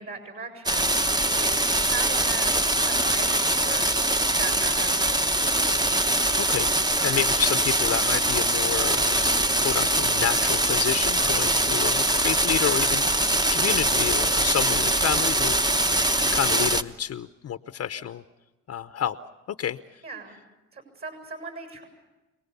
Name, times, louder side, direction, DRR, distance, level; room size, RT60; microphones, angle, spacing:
voice 1, 0.0-2.6 2.9-3.9 4.4-5.5 15.2-15.3 20.0-20.4 20.7-21.8, right 4 dB, 45° right, 5 dB, 7.4 m, -38 dB
sound 1, 0.7-16.8, right 1 dB, 15° right, 1.1 m, -23 dB
voice 2, 6.4-6.7 7.0-18.2 18.7-19.2 19.5-19.8, left 9 dB, 55° left, 10 dB, 0.9 m, -30 dB
28.0 x 19.5 x 6.9 m, 1.1 s
cardioid pair, 90°, 30 cm